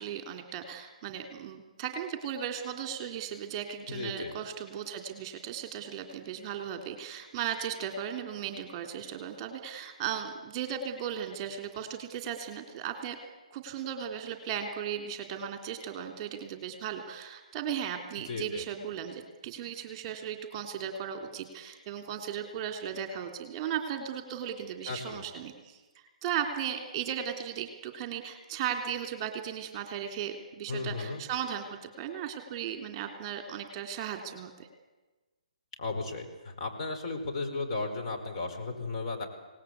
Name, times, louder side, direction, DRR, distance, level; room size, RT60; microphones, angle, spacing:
voice 1, 0.0-13.2 13.5-34.5, right 8 dB, 30° right, 6 dB, 3.3 m, -36 dB
voice 2, 3.9-4.3 18.3-18.6 24.9-25.2 30.7-31.2 35.8-39.3, left 3 dB, 45° left, 3 dB, 5.0 m, -35 dB
27.0 x 19.0 x 8.4 m, 1.2 s
figure-of-eight pair, 135°, 4 cm